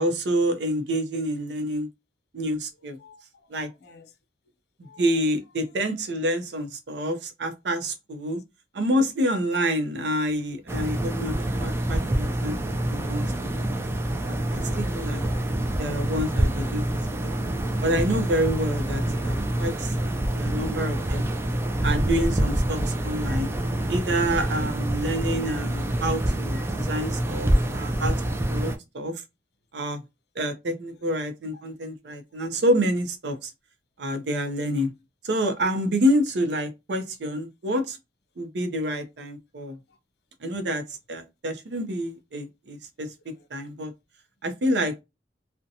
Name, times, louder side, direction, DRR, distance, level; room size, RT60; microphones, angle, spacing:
voice 1, 0.0-1.9 2.3-3.0 3.5-3.7 5.0-8.4 8.7-13.7 14.0-15.2 15.8-16.8 17.2-17.4 17.8-19.9 20.3-21.3 21.8-23.5 23.9-28.2 28.4-29.2 29.7-30.0 30.4-33.5 34.0-34.9 35.2-38.0 38.4-39.8 40.4-40.8 41.1-43.1 43.5-43.9 44.4-45.0, equal, 70° right, 0.5 m, -28 dB
voice 2, 3.0-4.2 4.8-5.1 5.7-5.8 19.4-21.2 21.8-21.9 23.6-23.7 30.9-31.1 31.5-31.7 32.1-32.2 39.9-40.0 43.3-43.7, left 4 dB, 65° left, 0.5 m, -56 dB
Microwave oven, 10.2-26.7, left 1 dB, 35° right, 1.0 m, -51 dB
sound 1, 10.7-28.8, right 1 dB, 15° right, 0.3 m, -26 dB
2.7 x 2.1 x 2.6 m
head